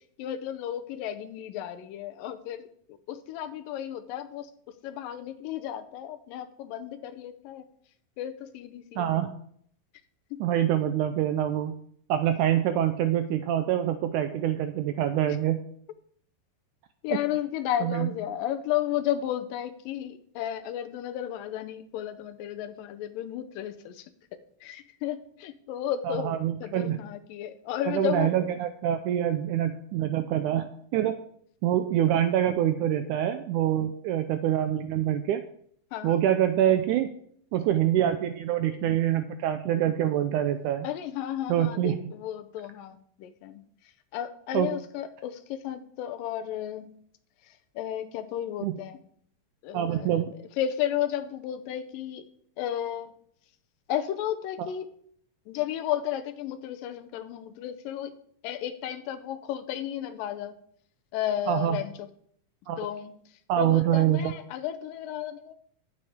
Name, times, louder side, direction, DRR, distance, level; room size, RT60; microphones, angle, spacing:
voice 1, 0.2-4.5 4.8-7.6 8.2-9.2 10.3-10.4 17.0-24.1 24.6-28.4 32.0-32.2 35.9-36.2 40.8-43.6 44.1-46.9 47.8-49.0 49.6-50.2 50.6-52.2 52.6-53.1 53.9-54.8 55.5-58.2 58.4-60.5 61.1-62.1 62.8-63.1 63.6-65.5, left 11 dB, 80° left, 10 dB, 2.3 m, -33 dB
voice 2, 9.0-9.3 10.4-11.7 12.1-15.6 17.8-18.1 26.1-27.0 27.9-31.2 31.6-35.4 36.0-37.1 37.5-40.9 41.5-42.0 44.5-44.7 48.6-48.8 49.7-50.3 61.5-61.8 62.7-62.8 63.5-64.3, right 11 dB, 85° right, 9 dB, 1.8 m, -25 dB
13.0 x 7.7 x 3.6 m, 0.64 s
omnidirectional pair, 4.0 m